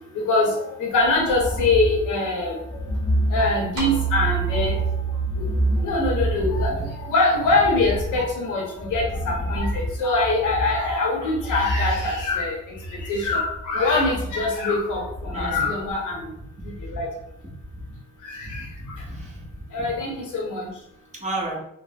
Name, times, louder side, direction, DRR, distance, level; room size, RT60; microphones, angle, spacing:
voice 1, 0.1-2.6 3.3-4.8 5.4-5.5 5.8-12.6 13.0-16.3 16.9-17.1 18.3-18.6 19.7-20.7, left 2 dB, 80° left, -1 dB, 0.9 m, -23 dB
sound 1, 0.9-15.9, equal, 10° left, 0.4 m, -29 dB
sound 2, 3.8-8.2, right 9 dB, 75° right, 0.6 m, -29 dB
voice 2, 15.3-15.7 16.6-17.0 17.7-17.8 18.4-18.7 19.1-19.6 21.1-21.6, right 1 dB, 25° right, -3 dB, 0.9 m, -32 dB
3.3 x 2.1 x 2.3 m, 0.78 s
cardioid pair, 90°, 30 cm